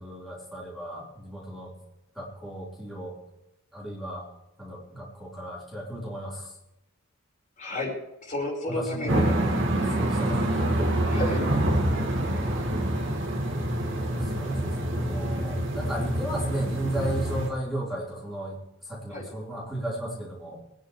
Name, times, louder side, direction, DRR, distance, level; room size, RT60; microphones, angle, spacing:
voice 1, 0.0-1.7 2.1-3.2 3.7-4.2 4.6-6.5 8.7-9.3 9.9-11.1 14.1-18.6 18.8-20.6, right 1 dB, ahead, -7 dB, 4.5 m, -34 dB
voice 2, 7.6-7.9 8.2-9.4 9.7-10.0 11.1-11.4 19.1-19.3, left 1 dB, 35° left, -3 dB, 4.9 m, -33 dB
sound 1, 9.1-17.5, right 1 dB, 60° right, 2.2 m, -26 dB
25.5 x 10.5 x 3.3 m, 0.94 s
head